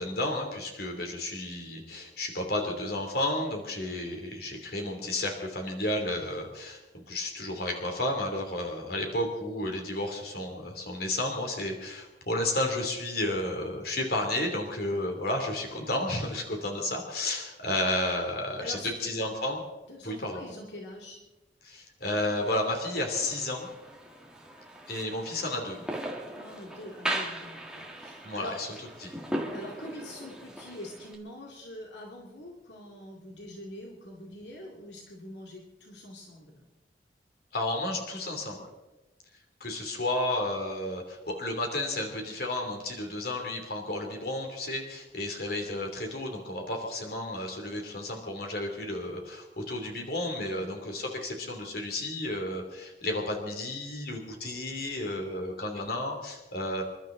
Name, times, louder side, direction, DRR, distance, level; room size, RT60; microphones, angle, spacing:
voice 1, 0.0-19.6 20.0-20.4 21.6-23.7 24.9-25.8 28.2-28.7 29.0-29.1 37.5-38.6 39.6-56.8, left 1 dB, 55° left, 2 dB, 3.1 m, -32 dB
voice 2, 18.6-19.1 19.9-21.2 26.4-28.6 29.5-36.7, left 1 dB, 75° left, -1 dB, 2.5 m, -44 dB
sound 1, 22.0-31.2, right 1 dB, 5° right, 1.8 m, -39 dB
27.5 x 12.0 x 3.9 m, 1.1 s
head